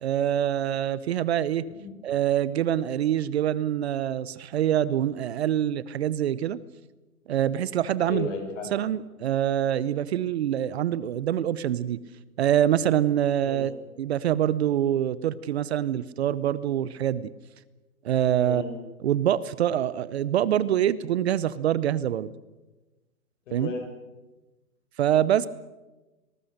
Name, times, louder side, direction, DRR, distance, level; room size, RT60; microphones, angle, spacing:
voice 1, 0.0-1.6 2.0-6.6 7.3-8.3 8.7-12.0 12.4-13.7 14.0-17.3 18.0-18.6 19.0-22.3 23.5-23.7 25.0-25.5, right 11 dB, 45° right, 18 dB, 0.8 m, -25 dB
voice 2, 8.1-8.7 13.4-13.7 18.4-18.7 23.5-23.9, left 4 dB, 55° left, 5 dB, 6.7 m, -34 dB
26.0 x 19.5 x 6.6 m, 1.1 s
hypercardioid pair, 155°, 44 cm